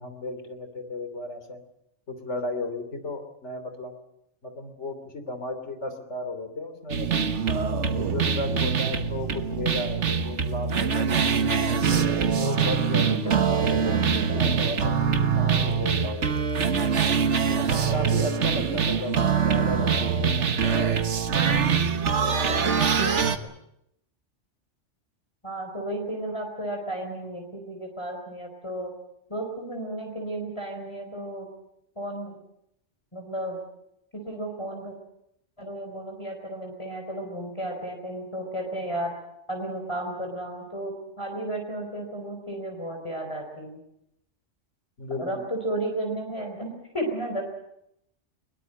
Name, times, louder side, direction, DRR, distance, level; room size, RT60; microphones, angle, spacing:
voice 1, 0.0-1.6 2.1-3.9 4.4-7.2 7.9-11.2 11.9-16.6 17.5-19.1 19.5-21.6 22.2-23.3 45.0-45.4, left 2 dB, 75° left, 8 dB, 3.3 m, -35 dB
sound 1, 6.9-23.4, right 6 dB, 75° right, 1.6 m, -24 dB
voice 2, 12.6-13.4 25.4-28.9 29.3-31.5 32.0-32.4 33.1-33.6 34.1-34.9 35.6-39.2 39.5-43.8 45.2-47.4, right 1 dB, 25° left, 1 dB, 4.2 m, -33 dB
22.0 x 21.0 x 7.7 m, 0.79 s
omnidirectional pair, 1.2 m